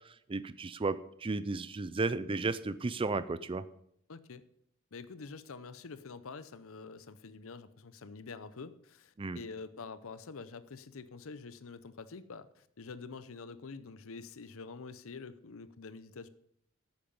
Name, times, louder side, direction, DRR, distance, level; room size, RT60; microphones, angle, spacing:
voice 1, 0.3-3.6 9.2-9.4, right 3 dB, 25° right, 14 dB, 0.4 m, -34 dB
voice 2, 4.1-4.4 4.9-16.3, left 4 dB, 70° left, 14 dB, 0.7 m, -47 dB
10.5 x 8.8 x 5.4 m, 0.71 s
head